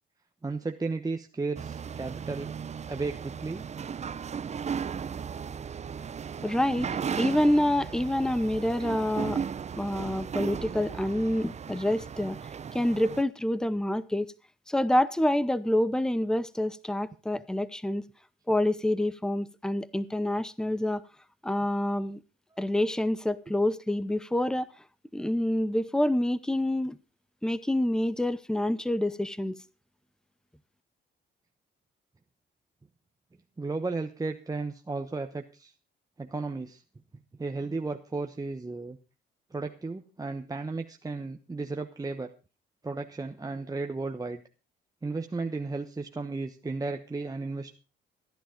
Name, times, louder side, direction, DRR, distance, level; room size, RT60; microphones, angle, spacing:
voice 1, 0.4-2.5 2.9-3.6 33.6-35.7 36.2-36.8 37.4-39.0 39.5-42.3 42.8-44.4 45.0-47.7, right 3 dB, 20° right, 1.0 m, -34 dB
sound 1, 1.6-13.2, right 7 dB, 35° right, 0.6 m, -36 dB
voice 2, 6.4-6.9 7.2-9.4 9.8-14.3 14.7-18.1 18.5-21.0 21.4-22.2 22.6-24.7 25.1-27.0 27.4-29.6, left 1 dB, 5° left, 0.8 m, -27 dB
14.5 x 10.5 x 5.1 m
cardioid pair, 90°, 20 cm